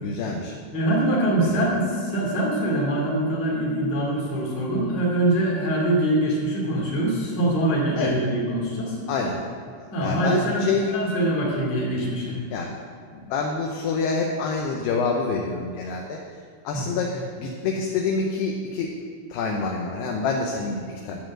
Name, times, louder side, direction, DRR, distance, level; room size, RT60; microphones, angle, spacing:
voice 1, 0.0-0.5 1.4-1.7 8.0-8.1 9.1-9.4 10.0-10.8 12.5-12.8 13.1-16.2 16.6-18.9 19.3-21.2, left 4 dB, 75° left, 1 dB, 2.5 m, -27 dB
voice 2, 0.7-9.0 9.9-12.4 16.7-16.9, right 1 dB, 40° left, -4 dB, 3.1 m, -24 dB
12.5 x 5.0 x 7.5 m, 2.1 s
omnidirectional pair, 5.4 m